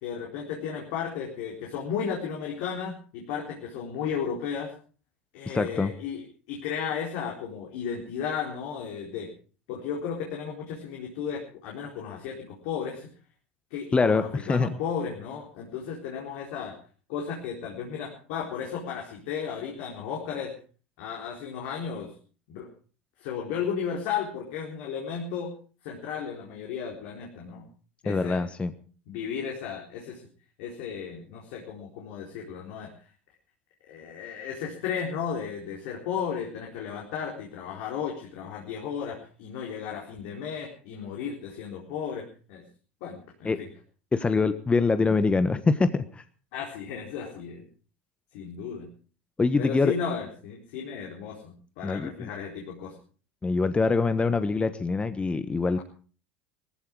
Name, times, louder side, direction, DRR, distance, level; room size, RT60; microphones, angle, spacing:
voice 1, 0.0-4.7 5.3-6.2 6.5-9.3 9.7-13.1 13.7-16.8 17.1-20.5 21.0-22.1 22.5-22.7 23.2-25.5 25.8-27.6 28.0-28.4 29.1-30.2 30.6-32.9 33.9-42.6 43.0-43.7 46.5-47.6 48.3-48.9 49.6-52.9, left 7 dB, 65° left, -1 dB, 4.1 m, -34 dB
voice 2, 5.5-5.9 13.9-14.2 14.5-14.8 28.0-28.7 43.4-43.6 44.1-46.2 49.4-49.9 51.8-52.3 53.4-55.8, left 4 dB, 20° left, 11 dB, 1.2 m, -24 dB
19.0 x 15.0 x 4.7 m, 0.41 s
hypercardioid pair, 75°, 6 cm